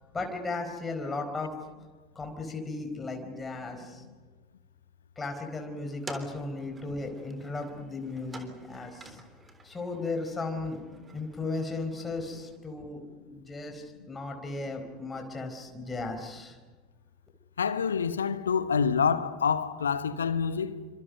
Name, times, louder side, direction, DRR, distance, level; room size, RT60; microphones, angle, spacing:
voice 1, 0.1-1.5 2.1-4.0 5.2-9.2 9.6-10.8 11.1-13.0 13.3-16.6, left 3 dB, 20° left, 4.4 m, -36 dB
sound 1, 5.8-12.6, right 3 dB, 20° right, 3.6 m, -49 dB
voice 2, 17.6-20.9, left 6 dB, 75° left, 1.1 m, -27 dB
28.5 x 26.0 x 5.3 m
figure-of-eight pair, 70°, 0 cm